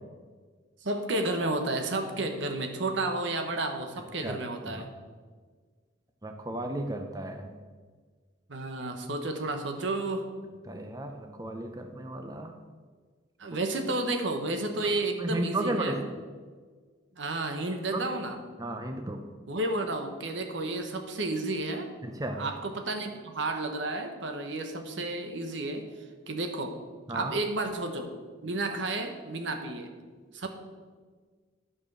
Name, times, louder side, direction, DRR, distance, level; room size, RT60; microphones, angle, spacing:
voice 1, 0.8-4.9 8.5-10.3 13.4-16.0 17.2-18.4 19.5-21.9 22.3-25.8 26.3-26.8 27.1-28.1 28.4-29.9 30.3-30.5, right 2 dB, 70° right, 5 dB, 1.1 m, -31 dB
voice 2, 6.2-7.5 10.7-12.6 15.2-16.0 17.9-18.1 18.6-19.2 22.0-22.4 27.1-27.3, right 1 dB, 20° right, 5 dB, 0.5 m, -34 dB
11.0 x 5.0 x 6.1 m, 1.5 s
head